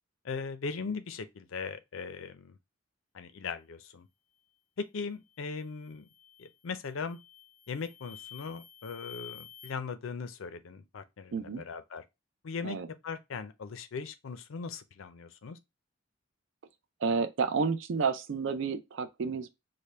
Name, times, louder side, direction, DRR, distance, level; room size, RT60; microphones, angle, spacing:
voice 1, 0.2-2.6 3.1-4.1 4.8-6.1 6.4-7.2 7.7-12.0 12.4-12.8 13.0-15.6, left 5 dB, 70° left, 0.5 m, -39 dB
sound 1, 5.3-5.6 6.1-6.6 7.1-9.7, left 10 dB, ahead, 0.8 m, -50 dB
voice 2, 11.3-11.6 12.6-12.9 17.0-19.5, right 5 dB, 60° right, 0.4 m, -30 dB
3.3 x 2.2 x 4.0 m
head